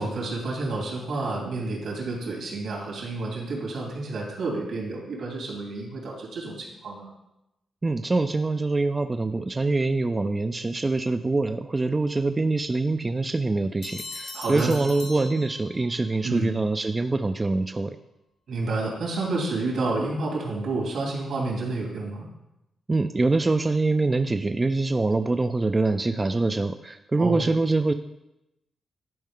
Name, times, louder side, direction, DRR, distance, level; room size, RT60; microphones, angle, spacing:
voice 1, 0.0-7.1 14.3-14.8 16.2-16.6 18.5-22.3 27.2-27.4, right 2 dB, 80° right, -2 dB, 2.8 m, -29 dB
voice 2, 7.8-18.0 22.9-27.9, right 3 dB, 25° right, 8 dB, 0.3 m, -24 dB
sound 1, 13.8-16.1, left 3 dB, 90° left, 1.4 m, -40 dB
11.0 x 4.4 x 3.7 m, 0.90 s
cardioid pair, 85°, 0 cm